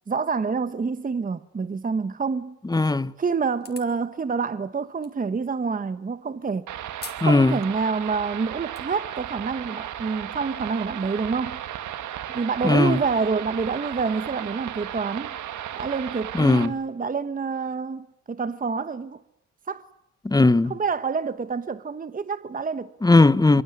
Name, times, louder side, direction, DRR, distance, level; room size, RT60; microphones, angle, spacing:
voice 1, 0.1-2.6 3.2-6.7 7.2-11.6 12.3-15.4 15.7-19.2 19.7-19.8 20.7-22.9 23.5-23.6, right 5 dB, 30° right, 1.1 m, -27 dB
voice 2, 2.7-3.1 7.2-7.6 12.6-13.0 16.3-16.7 20.2-20.7 23.0-23.6, left 2 dB, 15° left, 1.0 m, -18 dB
sound 1, 3.6-4.0 5.0-5.1 7.0-7.3 7.7-7.8 8.4-8.8, left 4 dB, 30° left, 4.6 m, -41 dB
sound 2, 6.7-16.7, right 11 dB, 75° right, 1.9 m, -35 dB
25.0 x 24.0 x 9.8 m
cardioid pair, 90°, 30 cm